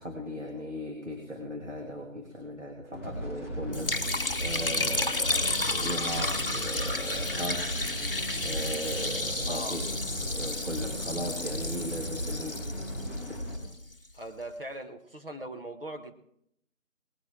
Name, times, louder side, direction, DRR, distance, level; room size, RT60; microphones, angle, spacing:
voice 1, 0.0-7.7 8.4-12.6 13.3-13.5, equal, 60° right, 0 dB, 2.4 m, -38 dB
sound 1, 2.9-13.6, equal, 15° right, 3.6 m, -36 dB
Liquid, 3.7-13.9, left 2 dB, 45° left, 1.0 m, -32 dB
voice 2, 9.5-9.8 14.1-16.1, right 1 dB, 45° right, 5 dB, 1.1 m, -40 dB
19.0 x 12.0 x 3.7 m, 0.73 s
figure-of-eight pair, 170°, 40 cm